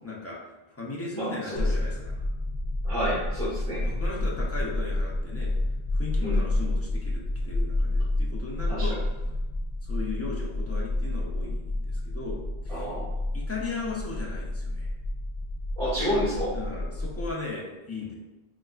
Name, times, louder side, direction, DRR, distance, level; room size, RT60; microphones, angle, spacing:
voice 1, 0.0-2.3 3.8-5.5 5.9-9.0 9.8-12.9 13.3-14.9 16.5-18.1, left 3 dB, 20° left, -4 dB, 0.4 m, -37 dB
voice 2, 1.1-1.6 2.8-3.8 6.2-6.4 8.7-8.9 12.7-13.1 15.8-16.5, equal, 35° right, -14 dB, 1.6 m, -29 dB
sound 1, 1.6-17.3, left 1 dB, 80° left, 0.8 m, -29 dB
3.3 x 2.9 x 2.3 m, 1.0 s
omnidirectional pair, 1.0 m